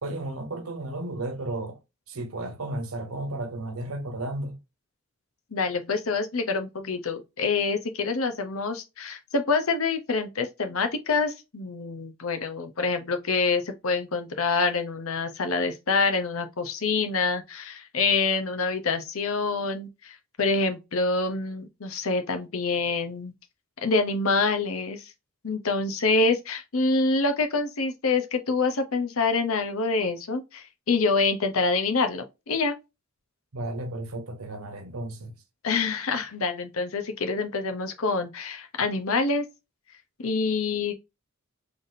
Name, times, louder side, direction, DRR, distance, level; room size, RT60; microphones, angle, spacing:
voice 1, 0.0-1.8 2.1-4.6 33.5-35.3, right 2 dB, 85° right, 1.0 m, -33 dB
voice 2, 5.5-23.3 23.8-25.0 25.4-32.7 35.6-39.4 40.2-40.9, left 4 dB, 80° left, 0.8 m, -26 dB
4.0 x 3.5 x 2.6 m
head